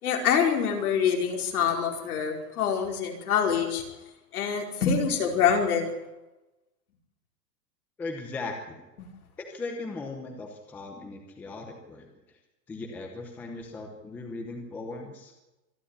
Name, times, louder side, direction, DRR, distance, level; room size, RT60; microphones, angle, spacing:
voice 1, 0.0-3.8 4.3-5.9 9.0-9.1, left 7 dB, 60° left, 2 dB, 4.8 m, -25 dB
voice 2, 8.0-8.8 9.4-12.4 12.7-15.3, left 3 dB, 5° left, 2 dB, 0.8 m, -38 dB
25.0 x 11.5 x 9.7 m, 1.0 s
supercardioid pair, 180°, 48 cm